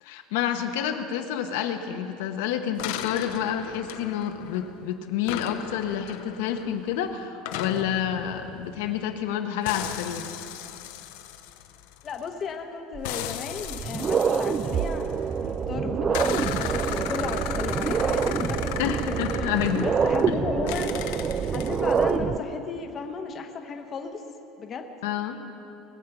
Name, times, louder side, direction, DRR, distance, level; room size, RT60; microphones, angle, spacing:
voice 1, 0.0-10.3 18.8-19.9 20.3-20.4 25.0-25.4, left 9 dB, 85° left, 6 dB, 1.0 m, -29 dB
sound 1, 2.8-4.8 5.3-9.3 9.7-12.4 13.0-15.5 16.1-20.3 20.7-22.1, left 11 dB, 70° left, 0.7 m, -36 dB
voice 2, 12.0-15.1 15.4-19.1 19.8-20.9 21.5-24.2 24.6-24.9, left 5 dB, 25° left, 4 dB, 0.8 m, -35 dB
sound 2, 12.9-13.0 13.6-22.4, right 6 dB, 20° right, 0.3 m, -26 dB
21.0 x 8.2 x 6.0 m, 2.9 s
cardioid pair, 180°, 0 cm